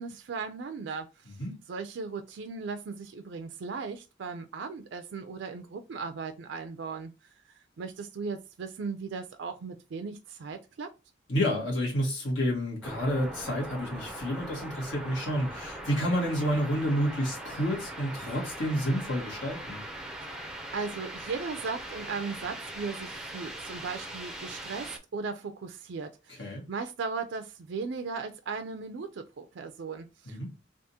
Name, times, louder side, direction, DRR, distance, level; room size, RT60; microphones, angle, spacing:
voice 1, 0.0-1.3 1.7-7.1 7.8-10.9 20.2-20.4 20.7-30.5, right 4 dB, 70° right, 0.4 m, -37 dB
voice 2, 11.3-19.8 26.4-26.6 30.3-30.5, equal, 75° left, 1.5 m, -29 dB
sound 1, 12.8-25.0, right 1 dB, 5° right, 0.5 m, -41 dB
3.5 x 2.4 x 2.8 m
head